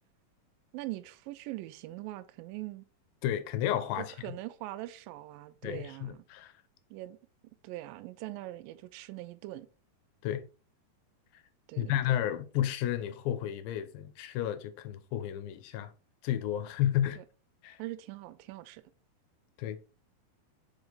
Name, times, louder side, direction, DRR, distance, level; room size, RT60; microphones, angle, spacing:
voice 1, 0.7-2.9 4.0-6.2 6.9-7.2 7.6-9.7 11.7-12.2 17.2-17.3 17.8-18.9, right 16 dB, 85° right, 2.1 m, -42 dB
voice 2, 3.2-4.1 5.6-6.5 10.2-10.5 11.3-11.4 11.8-15.9 16.2-17.2 17.6-17.8 19.6-19.8, left 11 dB, 80° left, 2.3 m, -32 dB
5.1 x 4.8 x 3.8 m
omnidirectional pair, 4.4 m